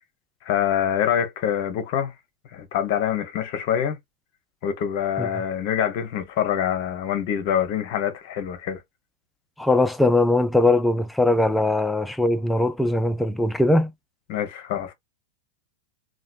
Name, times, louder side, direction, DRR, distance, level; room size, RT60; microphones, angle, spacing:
voice 1, 0.4-2.1 2.5-4.0 4.6-8.8 14.3-14.9, left 9 dB, 45° left, 0.7 m, -25 dB
voice 2, 9.6-13.9, left 2 dB, 5° left, 0.4 m, -20 dB
3.1 x 2.2 x 2.4 m
figure-of-eight pair, 90°, 0 cm